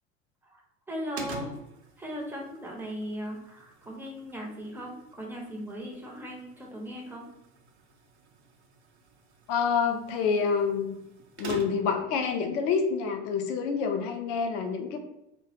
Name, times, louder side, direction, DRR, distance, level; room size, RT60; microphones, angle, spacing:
voice 1, 0.5-1.5 2.0-7.3, equal, 5° right, -1 dB, 0.5 m, -38 dB
sound 1, 1.2-12.0, right 4 dB, 75° right, 0.5 m, -46 dB
voice 2, 9.5-11.0 11.4-15.0, left 5 dB, 50° left, 5 dB, 0.5 m, -27 dB
2.3 x 2.0 x 2.8 m, 0.87 s
figure-of-eight pair, 70°, 34 cm